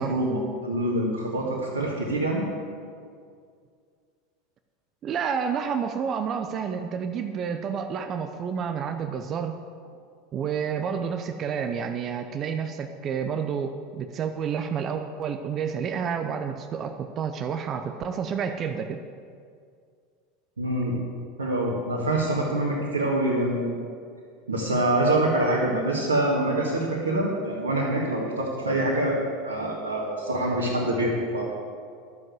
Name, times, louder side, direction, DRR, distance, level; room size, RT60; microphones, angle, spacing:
voice 1, 0.0-2.4 20.6-21.0 21.4-23.8 24.5-29.2 29.4-31.5, right 1 dB, 85° right, -5 dB, 1.8 m, -25 dB
voice 2, 5.0-9.6 10.3-19.0, right 7 dB, 40° right, 7 dB, 0.7 m, -29 dB
12.0 x 7.4 x 7.9 m, 2.2 s
hypercardioid pair, 80°, 0 cm